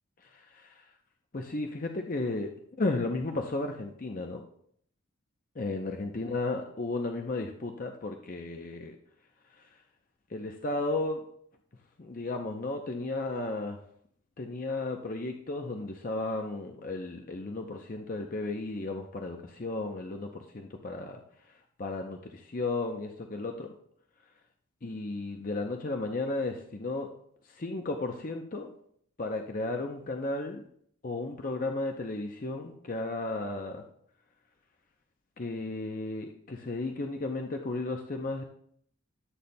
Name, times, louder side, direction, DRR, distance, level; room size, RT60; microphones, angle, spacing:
voice 1, 0.2-0.9 1.3-2.5 2.8-4.4 5.6-9.0 9.6-9.7 10.3-11.2 12.0-13.8 14.4-21.2 21.8-23.7 24.8-27.1 27.5-28.7 29.2-30.6 31.0-33.8 35.4-38.4, left 2 dB, 40° left, 3 dB, 0.6 m, -34 dB
14.0 x 8.5 x 2.2 m, 0.65 s
head